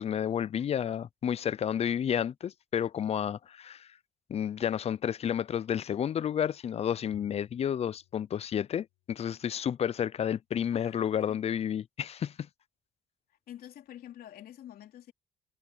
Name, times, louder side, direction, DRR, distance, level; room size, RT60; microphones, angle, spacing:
voice 1, 0.0-3.9 4.3-12.5, left 9 dB, 40° left, 0.5 m, -31 dB
Bowed string instrument, 7.1-9.7, left 19 dB, 90° left, 8.0 m, -61 dB
voice 2, 10.7-11.6 13.5-15.1, left 11 dB, 65° left, 3.3 m, -48 dB
cardioid pair, 110°, 17 cm